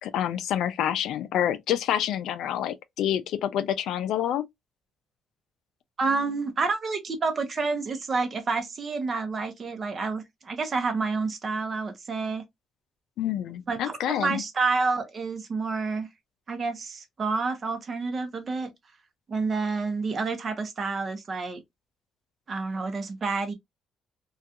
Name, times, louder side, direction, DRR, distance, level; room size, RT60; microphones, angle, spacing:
voice 1, 0.0-4.4 13.2-14.4, left 10 dB, 85° left, 0.3 m, -27 dB
voice 2, 6.0-12.4 13.7-16.1 16.5-18.7 19.3-21.6 22.5-23.5, right 4 dB, 45° right, 0.7 m, -29 dB
2.6 x 2.3 x 2.3 m
cardioid pair, 90°, 0 cm